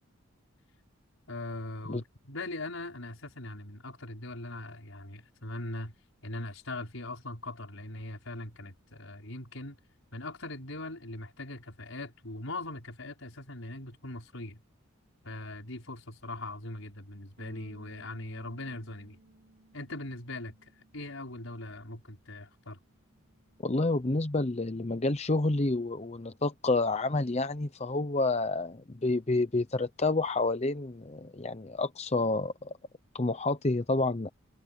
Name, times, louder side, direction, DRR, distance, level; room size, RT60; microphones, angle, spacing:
voice 1, 1.3-5.9 6.2-9.8 10.1-14.6 15.2-19.2 19.7-20.6 20.9-22.8, left 2 dB, 75° left, 5.2 m, -40 dB
Bass guitar, 17.4-23.6, right 1 dB, 65° right, 7.5 m, -60 dB
voice 2, 23.6-32.7 33.1-34.3, left 2 dB, 30° left, 0.7 m, -29 dB
head